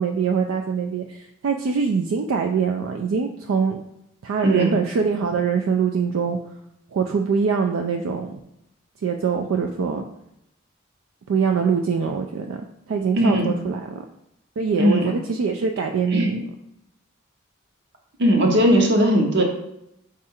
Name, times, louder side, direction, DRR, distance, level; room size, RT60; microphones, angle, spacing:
voice 1, 0.0-3.8 4.2-6.4 6.9-8.4 9.0-10.0 11.3-12.6 12.9-14.0 14.6-16.4, right 5 dB, 80° right, 3 dB, 0.4 m, -23 dB
voice 2, 4.4-4.7 13.1-13.5 14.8-15.1 16.1-16.3 18.2-19.4, equal, 55° right, 2 dB, 0.8 m, -18 dB
4.6 x 2.4 x 4.2 m, 0.81 s
head